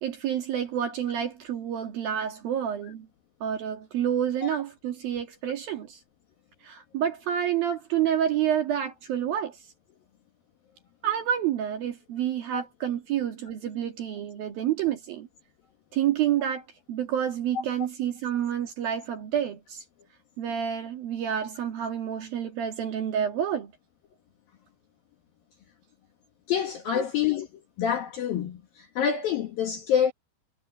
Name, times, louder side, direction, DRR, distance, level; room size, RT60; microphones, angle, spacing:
voice 1, 0.0-3.1 3.4-6.0 6.6-9.6 11.0-15.3 15.9-19.8 20.4-23.7 26.9-27.0, right 9 dB, 55° right, 3.1 m, -29 dB
voice 2, 26.5-27.5 27.8-28.6 29.0-30.1, left 8 dB, 60° left, 2.7 m, -26 dB
omnidirectional pair, 5.9 m